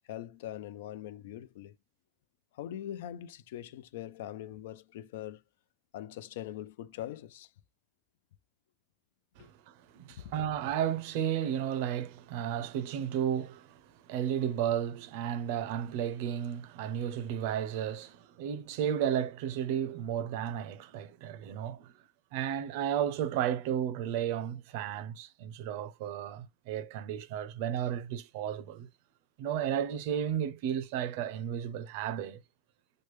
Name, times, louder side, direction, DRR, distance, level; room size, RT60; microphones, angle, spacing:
voice 1, 0.1-1.8 2.5-5.4 5.9-7.5 9.4-9.5, left 12 dB, 80° left, 0.3 m, -42 dB
voice 2, 9.4-21.9 22.3-28.9 29.4-32.4, right 9 dB, 65° right, 0.5 m, -33 dB
3.1 x 2.1 x 3.1 m
supercardioid pair, 140°, 0 cm